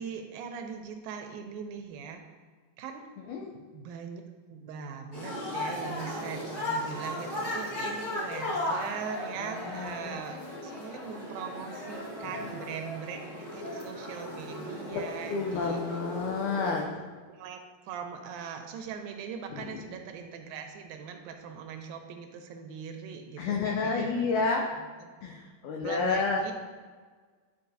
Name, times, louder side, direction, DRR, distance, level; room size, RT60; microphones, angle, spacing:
voice 1, 0.0-2.2 2.8-3.0 3.7-4.2 4.5-15.8 16.1-16.2 17.3-24.3 24.8-25.1 25.8-26.5, right 6 dB, 80° right, 5 dB, 2.3 m, -41 dB
sound 1, 5.1-16.8, left 1 dB, 40° left, 1.7 m, -36 dB
voice 2, 9.7-10.2 14.9-15.0 15.3-16.8 23.4-24.7 25.2-25.4 25.6-26.4, left 4 dB, 85° left, 0 dB, 1.7 m, -29 dB
11.0 x 5.2 x 2.7 m, 1.5 s
omnidirectional pair, 4.3 m